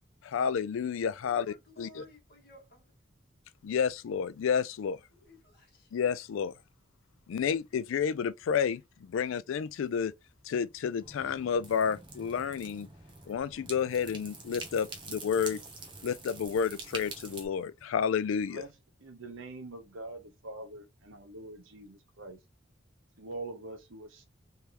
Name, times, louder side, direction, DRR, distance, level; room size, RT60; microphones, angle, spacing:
voice 1, 0.2-1.5 1.8-2.0 3.6-5.0 5.9-6.5 7.3-10.1 10.5-12.9 13.3-15.6 16.0-18.6, left 7 dB, 75° left, 0.3 m, -30 dB
voice 2, 1.2-2.8 5.1-5.9, left 2 dB, 50° left, 1.7 m, -55 dB
sound 1, 11.0-17.5, right 3 dB, 25° right, 0.8 m, -45 dB
voice 3, 18.5-22.4 23.2-24.2, right 2 dB, 75° right, 0.8 m, -44 dB
3.3 x 3.2 x 2.9 m
head